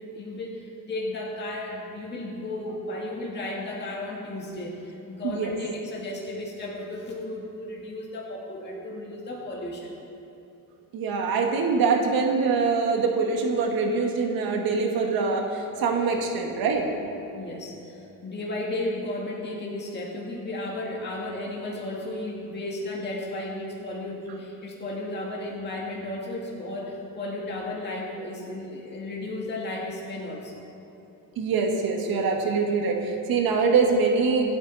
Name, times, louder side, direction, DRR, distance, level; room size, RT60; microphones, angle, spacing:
voice 1, 0.1-9.9 17.3-30.6, left 1 dB, 30° left, -4 dB, 2.1 m, -34 dB
voice 2, 5.2-5.6 10.9-16.9 31.4-34.6, right 4 dB, 85° right, 2 dB, 1.8 m, -24 dB
25.0 x 9.2 x 4.1 m, 3.0 s
cardioid pair, 165°, 35 cm